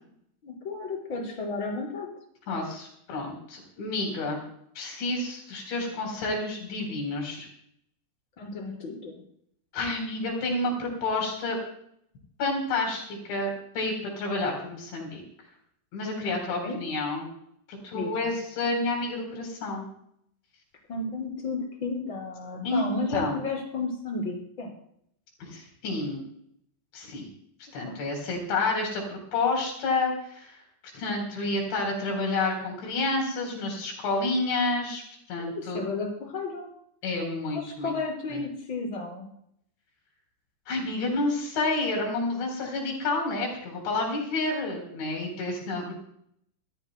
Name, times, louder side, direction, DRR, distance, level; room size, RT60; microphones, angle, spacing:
voice 1, 0.4-2.1 8.4-9.2 16.2-16.8 17.9-18.1 20.9-24.7 27.9-28.0 35.6-36.7 37.5-39.3, left 3 dB, 25° left, -2 dB, 5.4 m, -33 dB
voice 2, 2.5-4.4 4.8-7.5 9.7-11.6 12.4-15.2 15.9-17.3 17.7-19.9 22.6-23.4 25.4-26.2 26.9-27.3 27.7-30.6 30.9-35.0 35.3-35.8 37.0-37.9 38.3-38.4 40.7-45.9, left 2 dB, 75° left, 1 dB, 6.3 m, -29 dB
26.5 x 14.5 x 2.2 m, 0.69 s
omnidirectional pair, 5.2 m